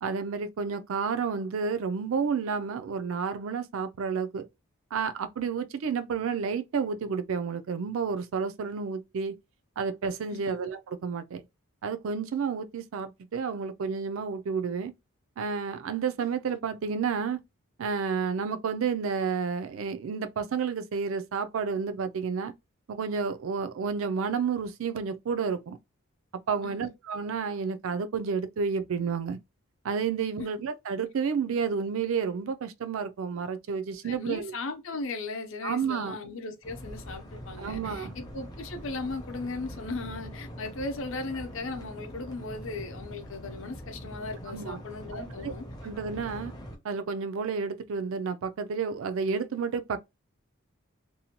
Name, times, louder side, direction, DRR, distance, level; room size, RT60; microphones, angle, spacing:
voice 1, 0.0-4.5 4.9-9.4 9.8-11.4 11.8-14.9 15.4-17.4 17.8-22.5 22.9-25.8 26.5-29.4 29.8-34.5 35.6-36.2 37.6-38.1 44.5-44.8 45.1-45.5 45.8-46.5 46.8-50.0, right 6 dB, 65° right, 0.4 m, -31 dB
voice 2, 34.0-45.6, left 3 dB, 65° left, 0.6 m, -37 dB
sound 1, 36.6-46.7, equal, 20° left, 0.5 m, -43 dB
2.7 x 2.1 x 2.8 m
head